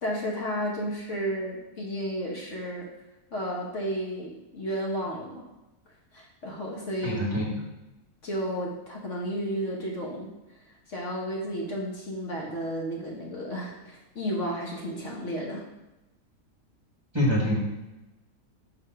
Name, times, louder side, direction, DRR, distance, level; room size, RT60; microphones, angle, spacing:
voice 1, 0.0-2.9 3.3-5.5 6.1-7.2 8.2-10.3 10.9-15.6, equal, 55° left, -2 dB, 1.4 m, -32 dB
voice 2, 7.0-7.5 17.1-17.6, equal, 20° right, -4 dB, 1.2 m, -25 dB
6.1 x 3.5 x 5.6 m, 1.0 s
omnidirectional pair, 1.7 m